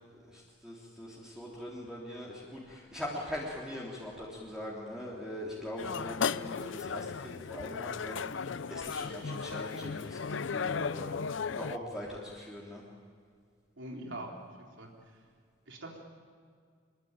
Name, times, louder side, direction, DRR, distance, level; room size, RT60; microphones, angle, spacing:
voice 1, 0.1-11.1 11.5-12.8, left 1 dB, 5° right, -6 dB, 3.3 m, -42 dB
sound 1, 5.8-11.8, left 5 dB, 70° left, 0.6 m, -35 dB
voice 2, 13.8-14.3 14.8-14.9 15.7-16.0, right 1 dB, 70° right, 0 dB, 3.3 m, -42 dB
25.5 x 22.0 x 9.0 m, 2.1 s
head